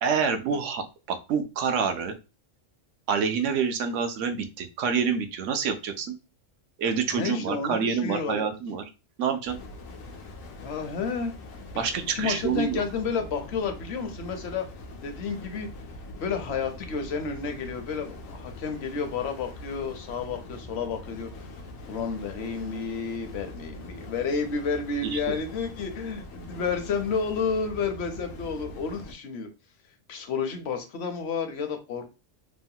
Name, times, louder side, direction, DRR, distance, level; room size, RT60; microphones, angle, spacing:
voice 1, 0.0-2.1 3.1-6.2 6.8-8.8 9.2-9.6 11.8-12.8 25.0-25.2, right 6 dB, 75° right, 6 dB, 0.9 m, -27 dB
voice 2, 7.1-8.4 10.6-11.3 11.7-14.7 15.0-15.7 16.2-21.5 21.9-29.5 30.1-32.0, left 5 dB, 60° left, 6 dB, 0.8 m, -31 dB
sound 1, 9.5-29.1, left 2 dB, 85° left, 1.0 m, -43 dB
3.1 x 2.1 x 2.7 m, 0.29 s
omnidirectional pair, 1.3 m